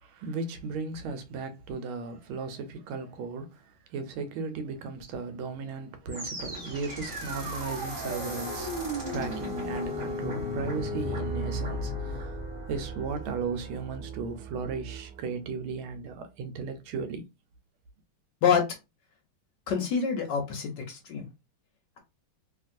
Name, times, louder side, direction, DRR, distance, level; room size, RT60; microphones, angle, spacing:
voice 1, 0.0-12.4 12.7-17.2, right 4 dB, 80° right, 1.4 m, -36 dB
sound 1, 6.1-15.2, equal, 25° right, 1.1 m, -35 dB
voice 2, 19.7-21.3, left 7 dB, 70° left, 1.2 m, -26 dB
2.9 x 2.8 x 2.5 m
omnidirectional pair, 2.3 m